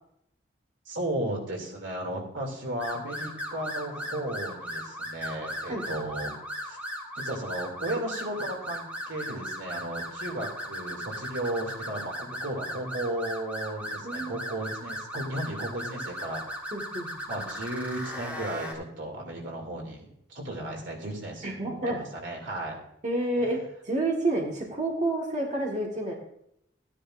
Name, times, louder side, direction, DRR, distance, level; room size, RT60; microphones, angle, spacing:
voice 1, 0.9-6.8 7.1-16.4 17.3-22.8, right 1 dB, 80° right, 1 dB, 2.6 m, -35 dB
sound 1, 2.8-18.7, equal, 10° right, 1.6 m, -37 dB
voice 2, 14.0-14.4 16.7-17.1 21.4-22.1 23.0-23.6 23.8-26.1, right 2 dB, 40° right, -2 dB, 1.6 m, -29 dB
14.5 x 10.0 x 2.6 m, 0.75 s
head